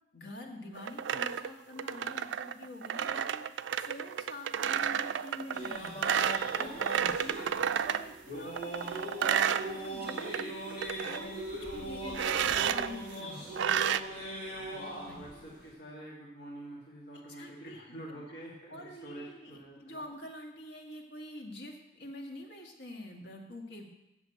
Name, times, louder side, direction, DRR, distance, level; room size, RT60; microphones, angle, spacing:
voice 1, 0.1-3.4 3.8-6.2 6.6-7.5 7.8-10.8 11.0-13.7 15.0-15.2 17.1-18.2 18.7-23.9, left 1 dB, 90° left, 1 dB, 1.8 m, -46 dB
sound 1, 0.8-8.1 8.5-10.4 10.7-11.2 12.1-12.9 13.6-14.0, right 8 dB, 80° right, 0.4 m, -31 dB
sound 2, 5.5-15.7, right 1 dB, 30° left, 2.5 m, -40 dB
voice 2, 6.7-7.6 14.7-20.0, right 1 dB, 70° left, -5 dB, 2.2 m, -47 dB
8.3 x 7.1 x 8.0 m, 0.93 s
head